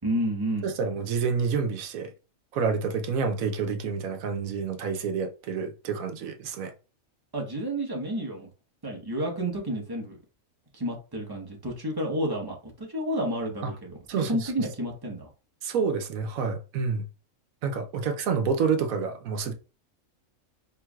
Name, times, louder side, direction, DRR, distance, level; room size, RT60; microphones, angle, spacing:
voice 1, 0.0-0.7 7.3-8.5 8.8-10.2 10.7-15.3, right 1 dB, 20° right, 1.0 m, -30 dB
voice 2, 0.6-2.1 2.5-6.7 14.1-14.3 15.6-17.1 17.6-19.5, right 5 dB, 80° right, 1.1 m, -28 dB
4.5 x 3.4 x 2.4 m
omnidirectional pair, 1.4 m